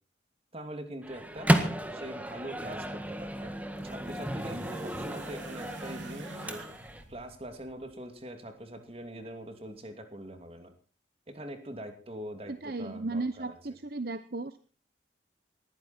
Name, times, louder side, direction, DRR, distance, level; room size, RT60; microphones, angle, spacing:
voice 1, 0.5-1.5 1.9-3.6 3.8-6.7 7.1-10.7 11.3-13.6, right 1 dB, 30° right, 7 dB, 2.7 m, -43 dB
Microwave oven, 1.0-7.0, right 1 dB, 10° right, 1.7 m, -32 dB
sound 1, 2.7-8.0 9.0-9.1, right 3 dB, 90° right, 3.3 m, -49 dB
voice 2, 12.5-14.6, right 3 dB, 55° right, 12 dB, 0.8 m, -35 dB
20.0 x 15.0 x 4.4 m, 0.36 s
head